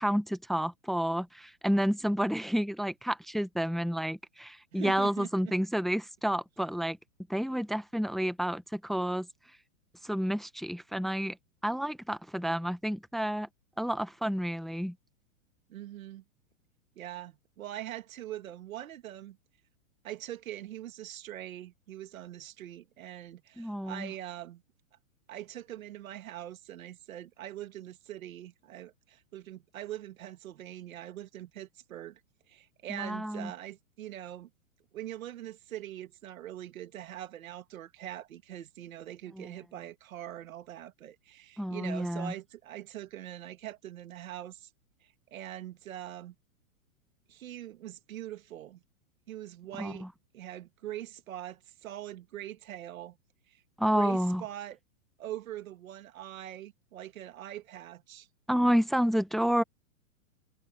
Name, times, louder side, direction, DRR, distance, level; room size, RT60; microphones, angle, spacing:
voice 1, 0.0-7.0 7.3-9.3 10.0-11.4 11.6-13.5 13.8-14.9 23.6-24.1 32.9-33.5 39.4-39.5 41.6-42.3 49.8-50.1 53.8-54.4 58.5-59.6, equal, ahead, 0.9 m, -30 dB
voice 2, 4.7-5.3 15.7-16.2 17.0-19.4 20.0-24.6 25.3-32.2 32.5-34.5 34.9-44.7 45.0-46.3 47.3-48.8 49.3-50.1 50.3-53.2 53.5-53.6 53.9-54.8 55.2-58.3, right 12 dB, 70° right, 2.3 m, -43 dB
hypercardioid pair, 135°, 42 cm